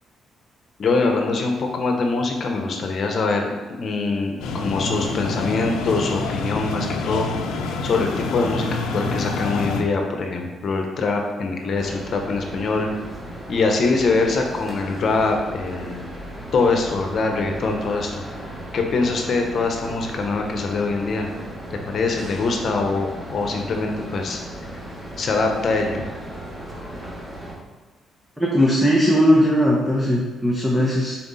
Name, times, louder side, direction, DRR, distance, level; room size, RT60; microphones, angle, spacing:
voice 1, 0.8-7.3 7.8-12.9 13.5-16.1 16.5-18.2 18.7-21.3 21.7-24.4 24.7-24.8 25.2-26.0, left 3 dB, 55° left, 3 dB, 1.0 m, -23 dB
sound 1, 4.4-9.8, left 3 dB, 85° left, 0.6 m, -27 dB
sound 2, 11.7-27.5, right 1 dB, 25° right, 1.8 m, -36 dB
voice 2, 28.4-31.2, equal, 5° right, -4 dB, 1.0 m, -18 dB
5.8 x 4.3 x 4.1 m, 1.3 s
cardioid pair, 90°, 0 cm